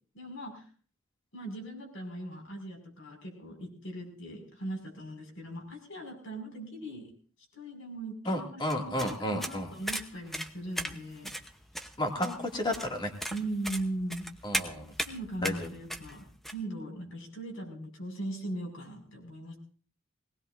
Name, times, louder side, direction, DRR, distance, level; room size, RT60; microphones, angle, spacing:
voice 1, 0.1-0.6 1.3-7.1 7.5-11.3 12.2-12.3 13.3-14.3 15.0-16.3 16.5-19.6, right 1 dB, 70° left, 1 dB, 5.9 m, -39 dB
voice 2, 8.3-9.7 12.0-13.1 14.4-14.9 15.4-15.7, left 1 dB, 25° left, 2 dB, 2.4 m, -32 dB
sound 1, 8.7-16.5, equal, ahead, 0.9 m, -37 dB
21.5 x 18.5 x 2.6 m, 0.42 s
head